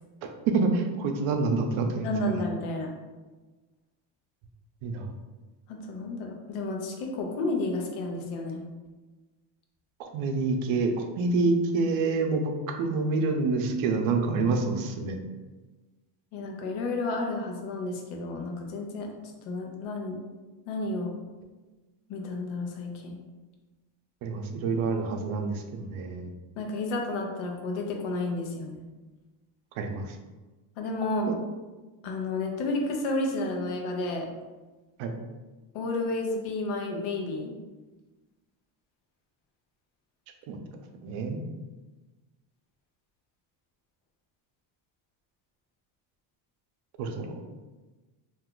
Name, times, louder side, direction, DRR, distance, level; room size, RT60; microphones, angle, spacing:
voice 1, 0.5-2.1 4.8-5.1 10.0-15.2 24.2-26.3 29.8-30.1 31.3-31.4 35.0-35.1 40.5-40.6 41.0-41.4 47.0-47.3, right 3 dB, 80° right, 4 dB, 0.6 m, -27 dB
voice 2, 2.0-2.9 5.7-8.6 16.3-19.1 19.4-20.2 20.7-21.1 22.1-23.2 26.6-28.9 30.8-31.4 32.0-34.3 35.7-37.5, left 2 dB, 80° left, 2 dB, 0.8 m, -31 dB
2.6 x 2.3 x 3.7 m, 1.2 s
cardioid pair, 150°, 47 cm